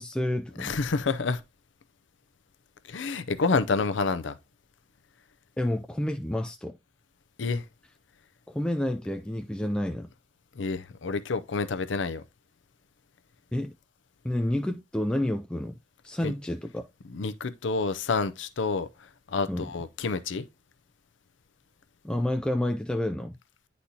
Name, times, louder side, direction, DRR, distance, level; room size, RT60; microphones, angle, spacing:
voice 1, 0.0-0.8 5.6-6.8 8.5-10.1 13.5-13.7 14.2-15.8 16.0-16.8 19.5-19.7 22.0-23.4, left 1 dB, 5° left, 0.3 m, -29 dB
voice 2, 0.6-1.4 2.9-4.4 7.4-7.6 10.6-12.2 16.2-16.3 17.1-18.9 19.3-20.4, left 4 dB, 75° left, 0.6 m, -28 dB
9.8 x 4.1 x 2.8 m
head